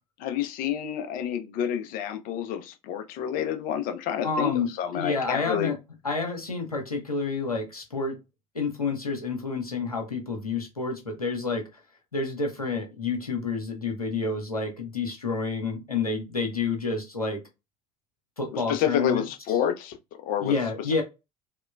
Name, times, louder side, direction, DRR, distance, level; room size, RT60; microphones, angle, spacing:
voice 1, 0.2-5.7 18.5-20.0 20.2-20.5, left 9 dB, 50° left, 0.6 m, -29 dB
voice 2, 4.2-4.7 4.9-5.8 6.0-8.2 8.5-11.8 12.1-17.4 18.4-19.3 20.4-21.0, left 4 dB, 85° left, 0.8 m, -29 dB
3.1 x 2.9 x 2.2 m
figure-of-eight pair, 60°, 19 cm